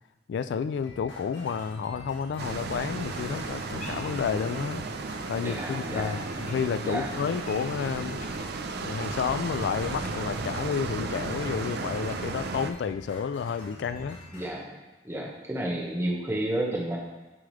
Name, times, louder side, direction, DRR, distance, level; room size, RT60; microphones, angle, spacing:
voice 1, 0.3-4.8 5.3-8.2 8.8-14.2, left 6 dB, 70° left, 12 dB, 0.3 m, -31 dB
sound 1, 0.8-14.5, left 1 dB, 90° left, 2.1 m, -47 dB
sound 2, 2.4-12.7, right 3 dB, 65° right, 0.5 m, -34 dB
sound 3, 2.9-4.7 5.0-6.9 7.1-10.1, left 1 dB, 45° left, 1.1 m, -49 dB
voice 2, 5.4-6.3 6.8-7.2 14.3-14.8 15.0-17.0, right 1 dB, 15° right, -2 dB, 1.4 m, -31 dB
10.0 x 4.9 x 3.3 m, 1.1 s
head